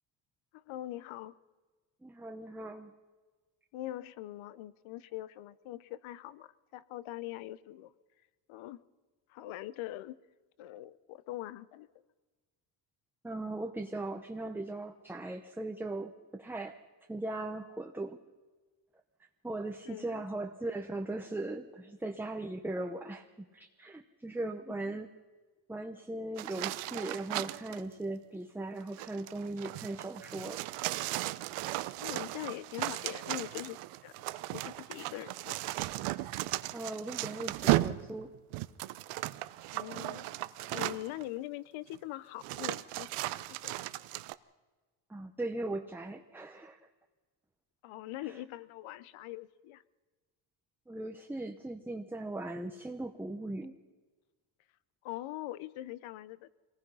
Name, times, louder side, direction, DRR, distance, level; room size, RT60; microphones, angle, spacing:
voice 1, 0.5-1.3 3.7-7.9 8.5-8.8 9.3-10.2 10.6-11.9 19.9-20.3 24.8-25.0 32.0-33.8 34.0-34.1 34.5-35.6 39.7-40.3 40.7-43.1 43.5-43.7 47.8-49.8 55.0-56.5, left 15 dB, 75° left, 17 dB, 1.0 m, -42 dB
voice 2, 2.0-2.9 13.2-16.8 17.1-18.2 19.4-25.1 25.7-30.6 36.7-38.3 45.1-46.8 48.2-48.3 50.9-53.7, right 2 dB, 5° right, 4 dB, 0.7 m, -39 dB
sound 1, 26.4-27.8 28.8-41.2 41.9-42.0 42.4-44.3, right 17 dB, 90° right, 0.9 m, -36 dB
25.5 x 19.0 x 5.6 m, 1.3 s
cardioid pair, 150°, 49 cm